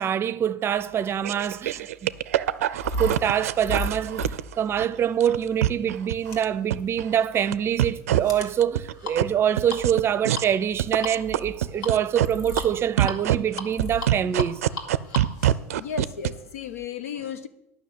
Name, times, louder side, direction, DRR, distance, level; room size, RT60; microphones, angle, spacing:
voice 1, 0.0-1.9 3.0-14.6, right 9 dB, 30° right, 0.6 m, -25 dB
sound 1, 1.2-16.8, left 1 dB, 65° left, 2.1 m, -37 dB
sound 2, 1.2-4.9 5.2-6.4 6.7-7.5 7.8-8.2 8.6-9.2 9.6-10.4 10.8-12.3 12.6-12.7 13.0-16.3, right 13 dB, 80° right, 0.4 m, -24 dB
voice 2, 15.7-17.5, left 8 dB, 80° left, 0.9 m, -34 dB
10.0 x 5.9 x 8.6 m
hypercardioid pair, 90°, 8 cm